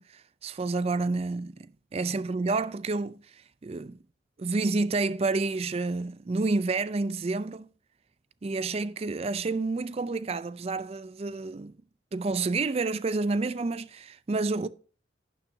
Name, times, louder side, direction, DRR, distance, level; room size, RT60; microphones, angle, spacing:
voice 1, 0.0-4.0 4.4-7.7 8.4-11.7 12.1-14.7, right 3 dB, 30° right, 0.4 m, -29 dB
11.5 x 9.9 x 2.7 m
head